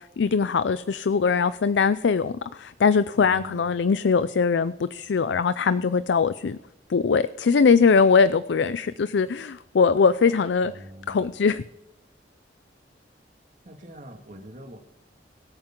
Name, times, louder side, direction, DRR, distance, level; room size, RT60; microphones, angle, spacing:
voice 1, 0.0-6.6 6.9-10.7 11.1-11.6, left 5 dB, 85° left, 15 dB, 0.4 m, -21 dB
voice 2, 3.1-3.7 10.6-11.3 13.6-14.8, right 1 dB, 45° right, 3 dB, 2.1 m, -43 dB
22.5 x 8.9 x 3.8 m, 0.94 s
head